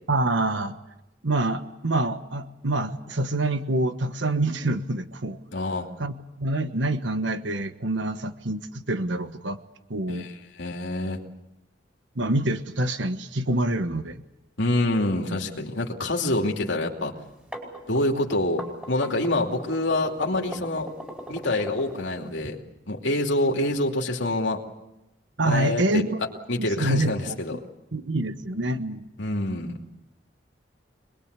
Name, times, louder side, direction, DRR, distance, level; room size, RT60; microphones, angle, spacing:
voice 1, 0.1-0.8 1.2-5.4 6.0-9.6 9.9-10.3 12.1-14.2 25.4-26.2 26.6-27.4 27.9-29.1, right 2 dB, 75° right, 9 dB, 1.3 m, -26 dB
voice 2, 5.5-5.9 10.1-10.3 10.6-11.2 14.6-17.1 17.9-18.6 18.9-20.9 21.3-22.6 22.9-24.6 25.4-26.1 26.5-27.6 29.2-29.8, left 1 dB, 80° left, 1 dB, 2.7 m, -26 dB
sound 1, 17.2-22.5, equal, 5° right, 5.1 m, -39 dB
26.0 x 21.0 x 8.2 m, 0.94 s
head